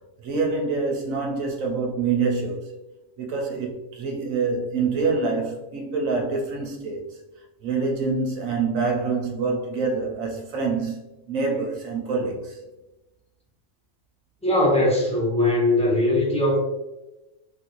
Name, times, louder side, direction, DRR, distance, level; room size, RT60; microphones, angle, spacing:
voice 1, 0.2-2.7 3.2-7.2 7.6-12.6, right 4 dB, 75° right, 1.0 m, -26 dB
voice 2, 14.4-16.6, left 1 dB, 5° left, 0.7 m, -20 dB
3.1 x 2.5 x 2.9 m
omnidirectional pair, 1.5 m